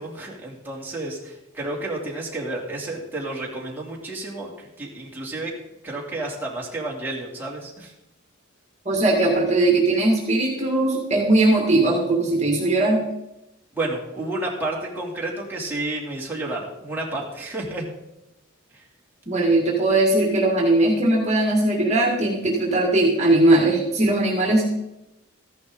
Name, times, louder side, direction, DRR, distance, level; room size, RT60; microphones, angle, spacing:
voice 1, 0.0-5.5 5.8-7.9 13.7-17.9, right 2 dB, 10° right, -4 dB, 2.9 m, -31 dB
voice 2, 8.9-13.1 19.3-24.6, right 2 dB, 35° right, -1 dB, 2.2 m, -19 dB
14.5 x 11.0 x 3.9 m, 0.91 s
head